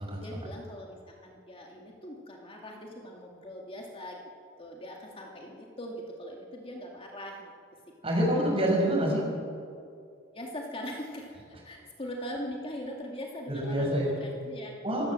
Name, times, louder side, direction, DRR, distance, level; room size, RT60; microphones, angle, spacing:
voice 1, 0.2-4.2 4.6-7.5 8.5-8.6 10.3-15.1, equal, 30° left, 0 dB, 2.3 m, -41 dB
voice 2, 8.0-9.2 13.5-14.1 14.8-15.1, right 1 dB, 30° right, -1 dB, 6.5 m, -26 dB
26.5 x 16.5 x 7.7 m, 2.3 s
head